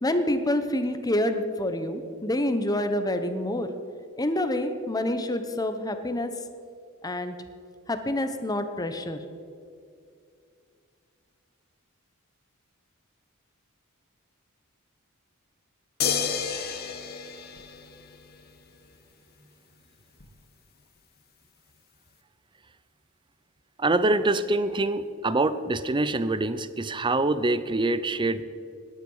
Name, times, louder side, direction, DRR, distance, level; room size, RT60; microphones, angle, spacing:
voice 1, 0.0-3.7 4.2-6.3 7.0-7.4 7.9-9.2, left 1 dB, 20° left, 9 dB, 1.0 m, -27 dB
sound 1, 16.0-18.5 20.2-20.3, left 7 dB, 45° left, 1.1 m, -30 dB
voice 2, 23.8-28.4, right 2 dB, 20° right, 14 dB, 0.6 m, -25 dB
18.0 x 10.5 x 5.6 m, 2.4 s
head